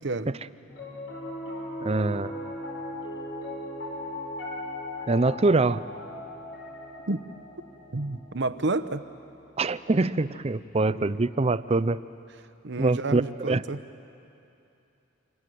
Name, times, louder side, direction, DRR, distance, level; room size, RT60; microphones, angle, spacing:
Piano, 0.7-11.1, left 1 dB, 65° left, 6.0 m, -39 dB
voice 1, 1.8-2.3 5.1-5.8 9.6-12.0 12.8-13.2 13.5-13.6, right 3 dB, 30° right, 15 dB, 0.5 m, -24 dB
voice 2, 7.9-9.1 10.9-11.1 12.6-13.8, right 2 dB, 60° right, 12 dB, 1.0 m, -30 dB
27.5 x 23.0 x 9.3 m, 2.8 s
head